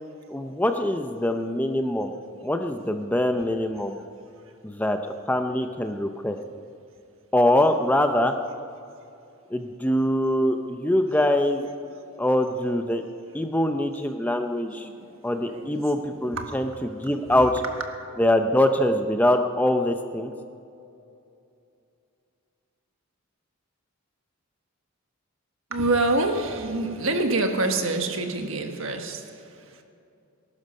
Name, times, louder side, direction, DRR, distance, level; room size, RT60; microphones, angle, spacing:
voice 1, 0.3-2.1 2.4-4.0 4.6-5.0 5.3-6.4 7.3-8.4 9.5-11.7 12.2-13.0 13.3-14.9 15.2-17.5 18.2-20.3, left 1 dB, 5° left, 6 dB, 0.6 m, -23 dB
voice 2, 14.7-16.6 17.0-17.5 17.9-18.2 25.7-29.8, right 2 dB, 60° right, 4 dB, 1.5 m, -28 dB
19.5 x 11.5 x 5.4 m, 2.6 s
head